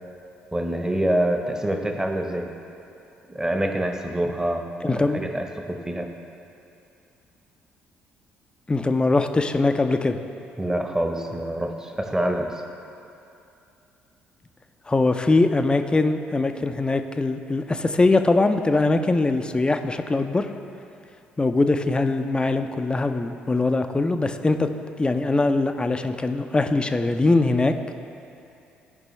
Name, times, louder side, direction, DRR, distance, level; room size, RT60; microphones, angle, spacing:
voice 1, 0.5-2.5 3.2-4.7 4.9-6.1 10.6-12.6, right 1 dB, 10° right, 3 dB, 0.9 m, -26 dB
voice 2, 4.8-5.2 8.7-10.2 14.9-20.5 21.4-24.7 25.0-27.7, left 2 dB, 15° left, 7 dB, 0.5 m, -22 dB
14.5 x 5.2 x 3.1 m, 2.7 s
figure-of-eight pair, 45°, 5 cm